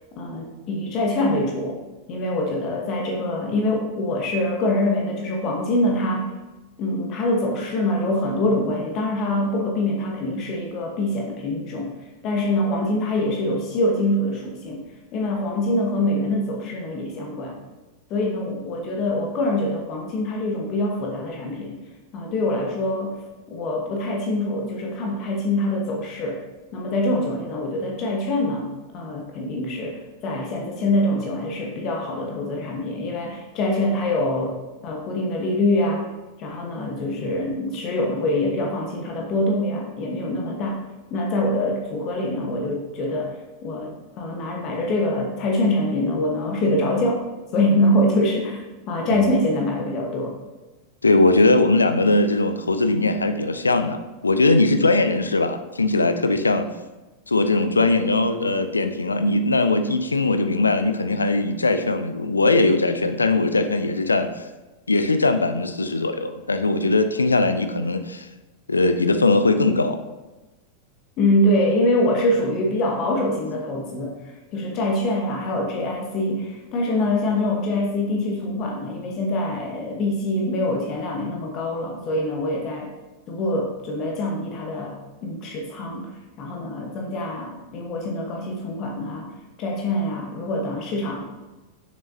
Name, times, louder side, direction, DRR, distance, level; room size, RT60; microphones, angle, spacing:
voice 1, 0.2-1.8 2.1-6.3 6.8-11.9 12.2-14.8 15.1-17.6 18.1-21.8 22.1-26.4 26.7-34.6 34.8-36.1 36.4-40.8 41.1-43.3 43.6-47.2 47.5-48.6 48.9-50.4 71.2-74.1 74.5-82.9 83.3-84.9 85.2-86.1 86.4-89.3 89.6-91.2, left 1 dB, 35° left, 1 dB, 1.1 m, -24 dB
voice 2, 49.1-49.4 51.0-56.7 57.3-64.5 64.9-68.3 68.7-70.0, left 2 dB, 80° left, 9 dB, 0.4 m, -20 dB
6.8 x 6.2 x 2.7 m, 1.1 s
figure-of-eight pair, 90°, 0 cm